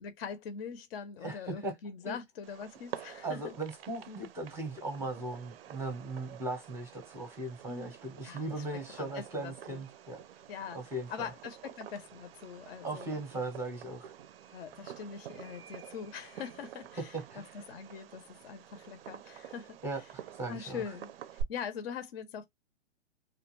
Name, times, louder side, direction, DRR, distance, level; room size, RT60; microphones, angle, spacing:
voice 1, 0.0-3.5 5.1-5.2 7.7-7.9 8.2-8.6 9.0-9.8 10.5-10.8 11.1-13.1 14.5-19.8 20.5-22.4, left 7 dB, 60° left, 0.6 m, -43 dB
voice 2, 1.2-1.7 2.0-2.2 3.2-10.2 10.7-11.3 12.8-14.1 17.0-17.4 19.8-20.8, right 2 dB, 10° right, 0.6 m, -38 dB
Fireworks, 2.4-21.4, right 10 dB, 60° right, 0.4 m, -49 dB
2.3 x 2.1 x 3.0 m
hypercardioid pair, 140°, 34 cm